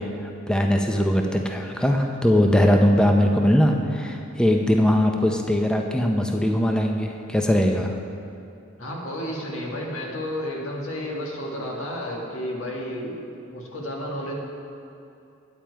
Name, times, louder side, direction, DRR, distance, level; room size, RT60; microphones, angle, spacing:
voice 1, 0.0-8.0, equal, 5° left, 2 dB, 0.5 m, -21 dB
voice 2, 8.8-13.2 13.5-14.3, equal, 90° left, -2 dB, 1.7 m, -31 dB
8.9 x 8.9 x 4.6 m, 2.7 s
head